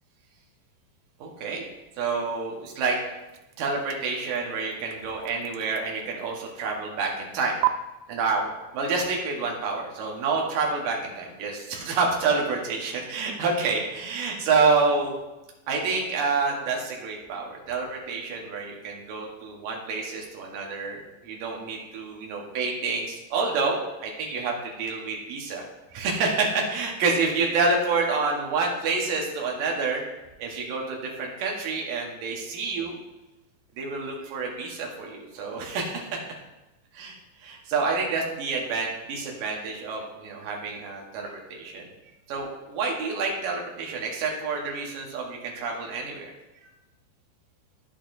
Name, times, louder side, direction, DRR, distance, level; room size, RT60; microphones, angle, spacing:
voice 1, 1.2-1.6 2.0-3.0 3.6-7.6 8.1-8.4 8.7-15.1 15.7-25.6 25.9-30.0 30.4-33.0 33.8-36.2 36.9-41.9 42.3-46.3, right 4 dB, 65° right, -1 dB, 2.3 m, -28 dB
sound 1, 3.2-7.0 7.6-7.7, right 20 dB, 90° right, 3.0 m, -35 dB
11.0 x 8.5 x 2.6 m, 1.0 s
omnidirectional pair, 5.4 m